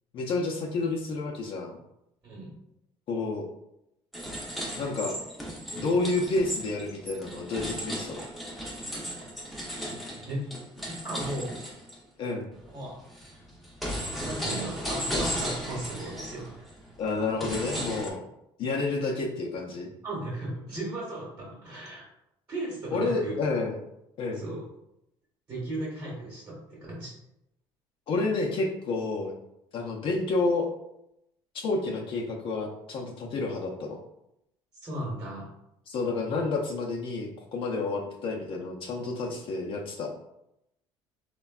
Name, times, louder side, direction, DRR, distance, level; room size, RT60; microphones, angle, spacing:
voice 1, 0.1-1.8 3.1-3.5 4.7-5.1 5.7-8.2 12.2-12.5 17.0-18.2 18.6-19.9 22.9-23.8 24.2-24.4 28.1-29.3 29.7-30.7 31.6-34.0 35.9-40.1, left 3 dB, 55° left, 0 dB, 0.5 m, -29 dB
sound 1, 4.1-12.0 12.5-18.1, equal, ahead, 0.6 m, -35 dB
voice 2, 11.0-11.6 12.7-13.0 14.2-16.5 20.0-22.1 22.5-23.4 24.3-24.6 25.5-27.1 34.8-35.5 39.2-39.4, right 1 dB, 25° right, -5 dB, 1.0 m, -36 dB
3.2 x 2.1 x 2.3 m, 0.82 s
cardioid pair, 110°, 11 cm